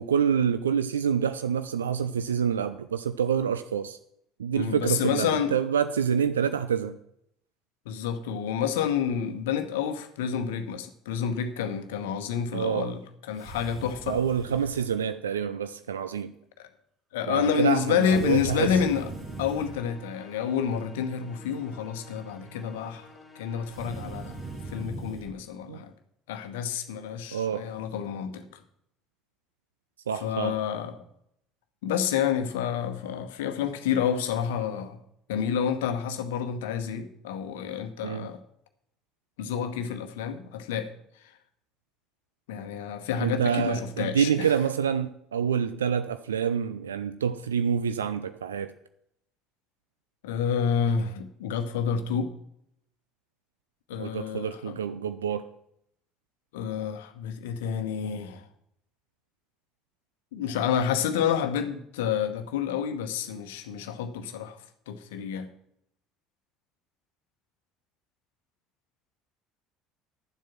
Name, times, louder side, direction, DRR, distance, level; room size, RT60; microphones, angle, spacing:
voice 1, 0.0-4.0 4.4-7.0 12.5-12.9 14.1-16.3 17.3-18.7 25.7-25.8 27.3-27.7 30.1-30.5 38.0-38.3 43.2-48.7 54.0-55.4, right 7 dB, 80° right, 0.4 m, -27 dB
voice 2, 4.5-5.5 7.9-13.0 13.3-14.2 16.6-16.7 17.1-19.1 19.4-23.1 23.3-24.3 24.7-25.9 26.3-28.5 30.2-31.0 31.8-35.0 35.3-38.4 39.4-40.9 42.5-44.5 50.2-52.3 53.9-54.7 56.5-58.4 60.3-64.6 64.9-65.5, left 8 dB, 70° left, 1.0 m, -29 dB
sound 1, 13.3-14.9 18.0-19.8 23.7-25.3, right 3 dB, 45° right, 2.1 m, -39 dB
sound 2, 18.2-24.8, left 1 dB, 5° left, 2.8 m, -50 dB
11.5 x 7.5 x 6.0 m
figure-of-eight pair, 60°, 0 cm